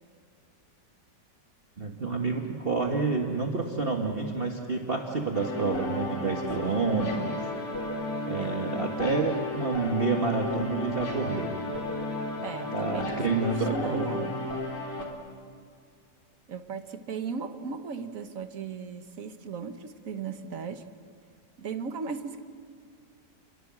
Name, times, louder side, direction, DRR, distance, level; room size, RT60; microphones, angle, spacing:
voice 1, 1.8-7.5 8.2-11.5 12.7-14.2, right 3 dB, 35° right, 1 dB, 1.8 m, -29 dB
sound 1, 5.3-15.1, left 2 dB, 75° left, 4.0 m, -34 dB
voice 2, 8.4-8.7 12.4-14.4 16.5-20.9 21.6-22.4, right 5 dB, 50° right, 9 dB, 1.5 m, -37 dB
30.0 x 22.0 x 7.6 m, 2.1 s
omnidirectional pair, 1.9 m